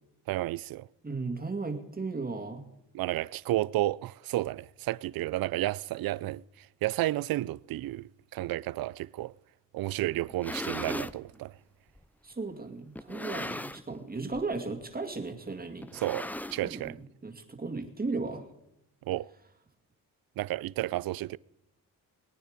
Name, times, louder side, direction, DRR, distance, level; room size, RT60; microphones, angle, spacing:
voice 1, 0.3-0.9 2.9-9.3 9.7-11.5 15.9-16.9 19.1-19.3 20.4-21.4, right 16 dB, 70° right, 0.5 m, -32 dB
voice 2, 1.0-2.7 12.2-15.9 16.6-16.9 17.2-18.5, right 3 dB, 25° right, 2.2 m, -35 dB
sound 1, 10.2-11.2 12.0-12.1 13.0-14.0 14.3-14.6 14.8-14.9 15.8-16.9, left 1 dB, 5° left, 0.4 m, -37 dB
22.0 x 9.3 x 5.1 m
cardioid pair, 90°, 37 cm